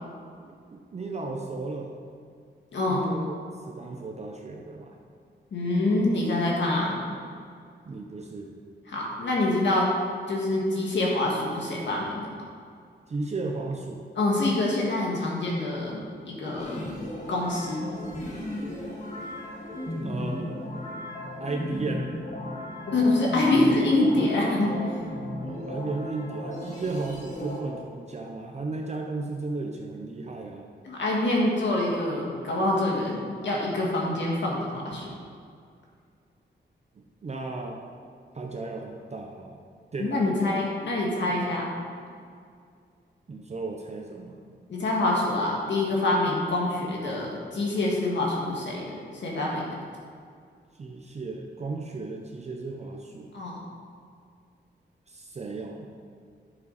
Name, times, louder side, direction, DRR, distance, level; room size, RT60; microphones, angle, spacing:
voice 1, 0.4-1.9 2.8-3.3 3.7-5.0 7.9-8.5 13.1-14.1 20.0-20.6 21.4-22.1 25.4-30.7 37.0-37.8 38.3-39.6 39.9-40.6 41.3-41.4 43.3-44.4 50.8-53.3 55.1-55.9, right 3 dB, 35° right, 1 dB, 0.7 m, -35 dB
voice 2, 2.7-3.1 5.5-7.0 8.9-9.9 10.3-12.3 14.2-16.8 17.3-17.9 22.9-24.8 30.9-35.1 40.0-41.7 44.7-49.7 53.3-53.6, left 2 dB, 75° left, -3 dB, 1.8 m, -26 dB
sound 1, 16.6-27.6, left 1 dB, 40° left, 1.8 m, -36 dB
9.8 x 7.2 x 4.1 m, 2.2 s
wide cardioid pair, 165°, 19 cm